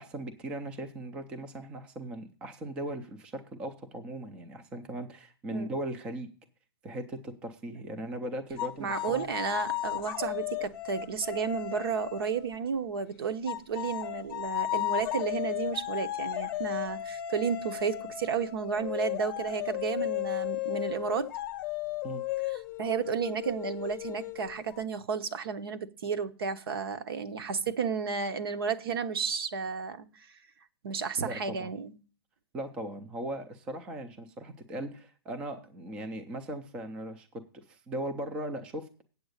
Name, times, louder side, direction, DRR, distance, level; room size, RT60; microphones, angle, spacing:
voice 1, 0.0-6.3 6.8-9.3 22.0-22.2 31.2-31.7 32.5-38.9, right 1 dB, 5° right, 0.4 m, -38 dB
sound 1, 8.6-12.5 13.5-24.8, left 15 dB, 20° left, 0.8 m, -35 dB
voice 2, 8.8-21.3 22.8-30.3 30.8-31.9, right 6 dB, 60° right, 1.0 m, -32 dB
7.9 x 7.9 x 6.4 m
hypercardioid pair, 180°, 14 cm